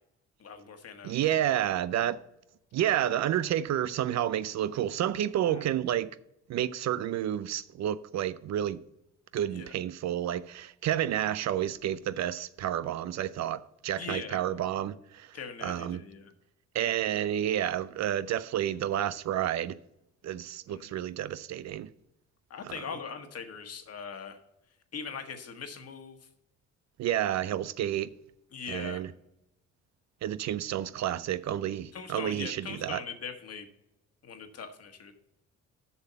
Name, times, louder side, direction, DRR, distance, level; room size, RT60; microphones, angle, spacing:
voice 1, 0.4-1.3 5.5-5.6 9.5-9.7 13.9-14.4 15.3-16.3 20.7-21.0 22.5-24.4 24.9-26.2 28.5-29.1 31.9-33.7 34.2-35.1, left 6 dB, 55° left, 1.5 m, -41 dB
voice 2, 1.0-2.2 2.7-6.2 6.5-8.8 9.3-15.3 15.6-16.0 16.7-19.8 20.2-21.9 22.7-22.8 27.0-28.1 28.7-29.1 30.2-33.0, right 11 dB, 65° right, 0.5 m, -30 dB
7.1 x 5.6 x 7.0 m
cardioid pair, 90°, 30 cm